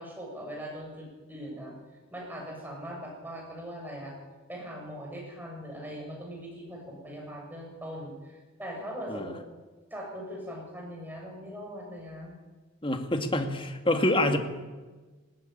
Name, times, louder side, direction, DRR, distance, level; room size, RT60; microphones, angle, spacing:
voice 1, 0.0-1.7 2.1-4.1 4.5-9.4 9.9-12.3, equal, 10° right, -1 dB, 7.2 m, -40 dB
voice 2, 12.8-14.4, left 1 dB, 25° left, 6 dB, 2.0 m, -26 dB
19.5 x 18.5 x 9.1 m, 1.3 s
head